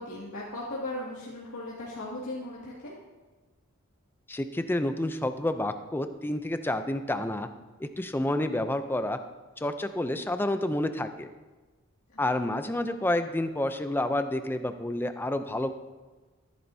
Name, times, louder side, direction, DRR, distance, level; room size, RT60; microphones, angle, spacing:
voice 1, 0.0-2.9 12.1-12.2, left 1 dB, 80° left, -8 dB, 2.3 m, -37 dB
voice 2, 4.3-7.5 7.8-9.2 9.6-11.3 12.2-15.7, left 1 dB, 10° left, 9 dB, 0.5 m, -29 dB
13.5 x 10.5 x 2.7 m, 1.3 s
head